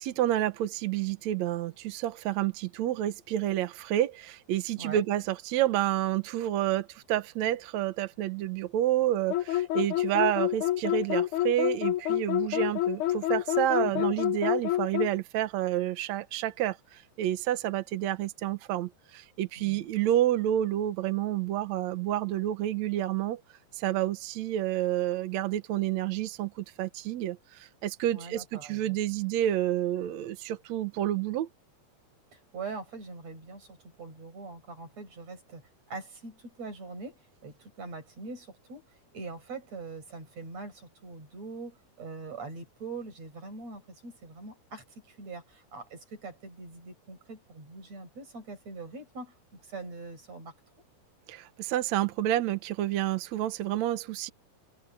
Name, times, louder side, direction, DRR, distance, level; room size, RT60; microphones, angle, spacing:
voice 1, 0.0-23.4 23.7-31.5 51.3-54.3, right 12 dB, 75° right, 1.6 m, -29 dB
sound 1, 9.3-15.2, left 14 dB, 70° left, 2.0 m, -27 dB
voice 2, 28.1-29.0 32.3-50.5, right 3 dB, 40° right, 7.3 m, -43 dB
omnidirectional pair, 4.7 m